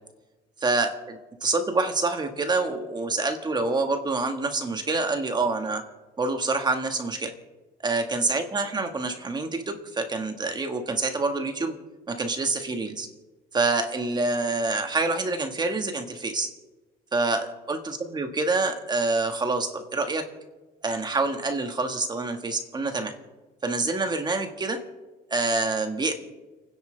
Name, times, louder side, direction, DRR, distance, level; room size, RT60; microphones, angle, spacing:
voice 1, 0.6-5.8 6.2-7.3 7.8-11.8 12.1-13.1 13.5-16.5 17.1-20.2 20.8-23.1 23.6-24.8 25.3-26.1, right 3 dB, 25° right, 5 dB, 1.7 m, -26 dB
30.0 x 10.5 x 3.4 m, 1.2 s
cardioid pair, 110°, 17 cm